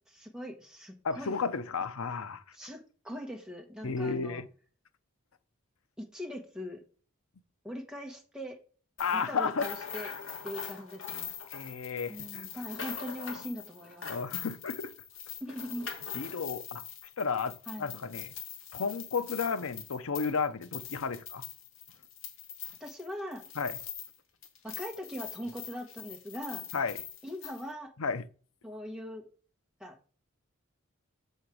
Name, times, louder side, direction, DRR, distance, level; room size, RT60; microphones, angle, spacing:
voice 1, 0.1-1.3 2.5-2.8 3.0-4.4 6.0-6.8 7.6-8.6 9.1-10.1 10.4-11.3 12.1-14.1 15.4-15.9 17.7-18.0 22.8-23.4 24.6-26.7 27.2-27.9 28.6-29.2 29.8-29.9, equal, 5° right, 1.3 m, -41 dB
voice 2, 1.0-2.4 3.8-4.5 9.0-9.7 10.0-10.1 11.5-12.5 14.1-14.9 16.1-16.8 17.2-18.3 18.7-21.4 23.6-23.8 26.7-27.0 28.0-28.2, left 5 dB, 90° left, 0.7 m, -33 dB
sound 1, 9.0-24.2 24.4-27.6, left 8 dB, 70° left, 1.5 m, -43 dB
6.9 x 4.5 x 4.9 m
head